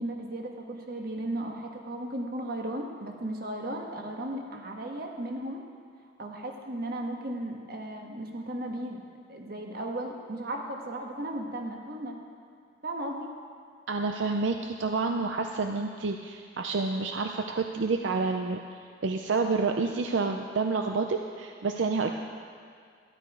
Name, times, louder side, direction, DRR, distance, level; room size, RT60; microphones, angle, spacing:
voice 1, 0.0-5.6 6.2-9.0 9.3-12.2 12.8-13.3, right 1 dB, 55° right, 1 dB, 1.4 m, -35 dB
voice 2, 13.9-18.6 19.0-22.1, right 4 dB, 80° right, 4 dB, 0.5 m, -29 dB
12.5 x 11.0 x 4.9 m, 2.2 s
head